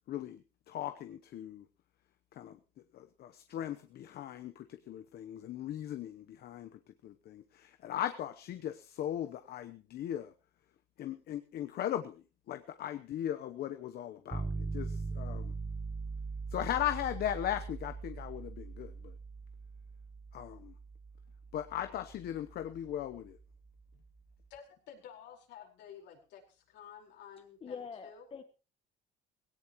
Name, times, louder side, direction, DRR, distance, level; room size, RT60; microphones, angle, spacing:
voice 1, 0.1-1.6 2.4-2.6 2.9-6.7 7.0-10.3 11.0-12.2 12.5-15.5 16.5-19.1 20.3-20.7 21.5-23.4, left 11 dB, 60° left, 9 dB, 0.9 m, -38 dB
sound 1, 14.3-24.2, right 4 dB, 15° right, 1.0 m, -41 dB
voice 2, 24.5-27.8 28.0-28.2, left 8 dB, 75° left, 1 dB, 4.6 m, -52 dB
voice 3, 27.6-28.4, left 6 dB, 30° left, 8 dB, 1.3 m, -44 dB
17.5 x 17.5 x 3.1 m, 0.34 s
cardioid pair, 115°, 18 cm